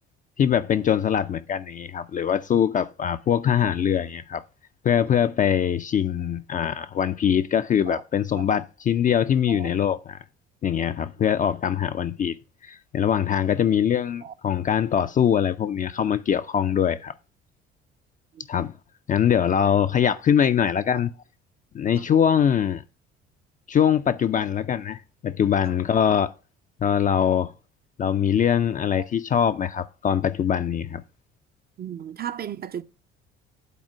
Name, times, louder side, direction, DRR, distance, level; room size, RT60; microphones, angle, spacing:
voice 1, 0.4-4.4 4.8-10.2 10.6-12.4 12.6-17.1 18.5-18.7 19.1-21.1 21.7-22.8 23.7-26.3 26.8-27.5 28.0-31.0, left 8 dB, 25° left, 0.4 m, -23 dB
voice 2, 31.8-32.8, right 9 dB, 30° right, 0.5 m, -35 dB
8.3 x 4.2 x 6.0 m
figure-of-eight pair, 50°, 33 cm